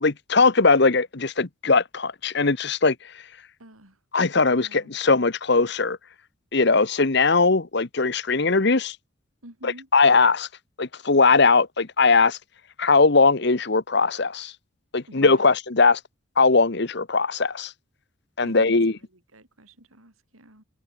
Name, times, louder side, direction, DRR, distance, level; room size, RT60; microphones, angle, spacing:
voice 1, 0.0-2.9 4.1-6.0 6.5-9.0 9.6-10.5 10.8-12.4 12.8-14.5 14.9-16.0 16.4-17.7 18.4-19.0, left 4 dB, 55° left, 1.1 m, -20 dB
voice 2, 3.6-4.0 4.5-5.0 9.4-9.9 15.1-15.5 18.4-19.0 19.3-20.6, right 1 dB, 90° right, 7.3 m, -48 dB
head